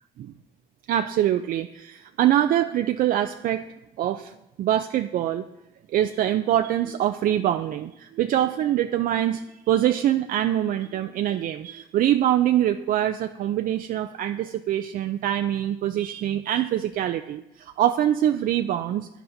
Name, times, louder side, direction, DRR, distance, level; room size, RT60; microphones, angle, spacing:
voice 1, 0.9-3.6 4.0-5.4 5.9-19.1, right 11 dB, 55° right, 7 dB, 0.4 m, -24 dB
16.0 x 10.0 x 2.7 m, 0.88 s
cardioid pair, 110°, 17 cm